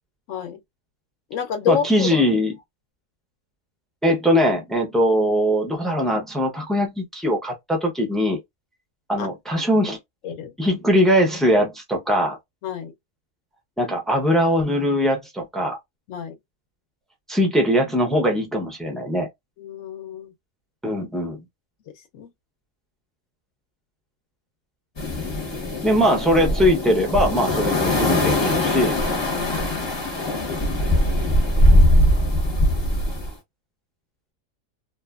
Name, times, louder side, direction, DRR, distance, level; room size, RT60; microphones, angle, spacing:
voice 1, 0.3-0.6 1.3-2.2 9.2-9.3 9.6-9.7 10.2-10.5 12.6-12.9 16.1-16.4 19.6-20.3 22.0-22.3 29.3-30.1, left 8 dB, 70° left, 0.9 m, -29 dB
voice 2, 1.7-2.5 4.0-8.4 9.1-10.0 10.6-12.4 13.8-15.8 17.3-19.3 20.8-21.4 25.8-29.0, equal, ahead, 0.4 m, -21 dB
sound 1, 25.0-33.3, left 1 dB, 25° left, 0.7 m, -21 dB
2.8 x 2.3 x 2.3 m
omnidirectional pair, 1.5 m